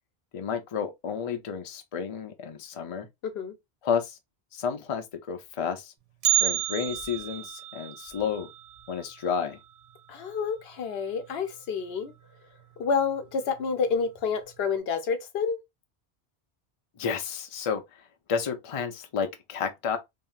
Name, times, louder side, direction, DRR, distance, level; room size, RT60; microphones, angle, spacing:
voice 1, 0.3-3.1 3.8-4.2 4.5-5.9 6.4-8.5 8.9-9.6 17.0-17.8 18.3-20.0, left 6 dB, 45° left, 0.5 m, -31 dB
voice 2, 3.2-3.6 10.1-12.1 12.8-15.6, left 5 dB, 75° left, 0.8 m, -29 dB
Bell, 6.2-10.3 10.6-10.7 11.2-11.3 12.1-12.2 12.9-13.2 13.6-13.7, right 14 dB, 45° right, 0.5 m, -31 dB
2.9 x 2.6 x 2.3 m
omnidirectional pair, 1.1 m